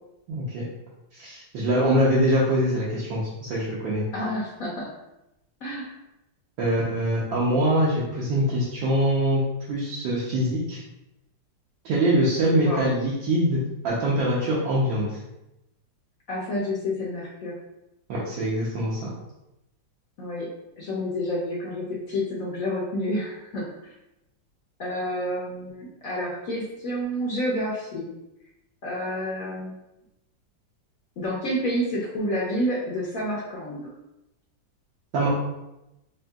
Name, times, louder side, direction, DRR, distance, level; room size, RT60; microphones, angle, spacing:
voice 1, 0.3-0.6 1.1-4.0 6.6-9.4 9.7-10.8 11.8-15.2 18.1-19.1 35.1-35.3, right 1 dB, 80° right, -7 dB, 1.5 m, -23 dB
voice 2, 4.1-4.9 5.6-6.0 12.6-12.9 16.3-17.5 20.2-20.5 20.8-23.7 24.8-28.1 28.8-29.8 31.2-33.9, equal, 60° left, -4 dB, 1.0 m, -29 dB
5.4 x 2.7 x 2.3 m, 0.90 s
omnidirectional pair, 2.0 m